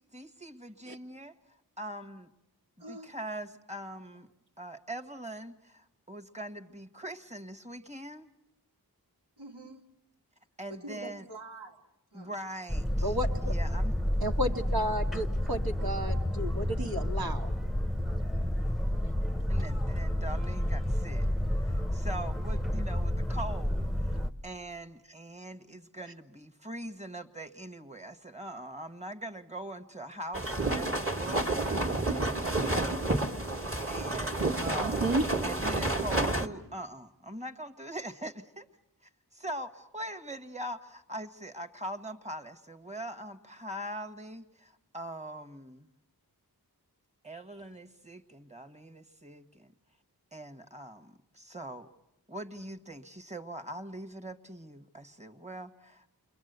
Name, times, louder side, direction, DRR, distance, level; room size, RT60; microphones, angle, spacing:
voice 1, 0.0-2.3 2.9-4.3 4.6-8.3 10.6-11.2 12.1-13.1 13.4-13.9 19.5-21.3 21.6-24.2 24.4-33.0 33.9-35.2 35.4-38.7 39.0-45.9 47.2-49.7 50.3-51.9 52.3-56.1, right 1 dB, 15° right, 1.5 m, -42 dB
voice 2, 2.8-3.1 9.4-9.9 10.7-12.3, right 2 dB, 85° right, 2.5 m, -46 dB
Boat Water vehicle, 12.7-24.3, left 1 dB, ahead, 0.9 m, -30 dB
voice 3, 13.0-13.5 14.2-17.5 34.5-35.2, equal, 65° right, 1.9 m, -32 dB
sound 1, 30.3-36.5, right 2 dB, 35° right, 1.8 m, -30 dB
29.5 x 23.0 x 8.1 m
wide cardioid pair, 45°, 39 cm